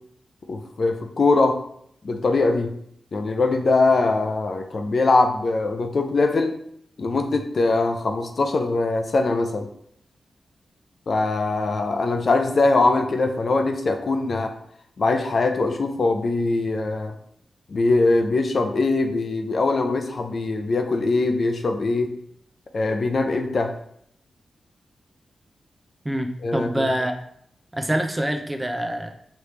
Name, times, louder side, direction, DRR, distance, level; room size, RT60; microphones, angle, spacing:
voice 1, 0.5-1.6 2.0-2.7 3.1-6.6 7.0-9.7 11.1-14.5 15.0-17.1 17.7-22.1 22.7-23.7 26.4-26.9, left 3 dB, 60° left, 6 dB, 0.5 m, -22 dB
voice 2, 26.0-27.1 27.7-29.1, right 1 dB, 15° right, 4 dB, 0.6 m, -25 dB
4.9 x 3.1 x 3.2 m, 0.69 s
cardioid pair, 70°, 0 cm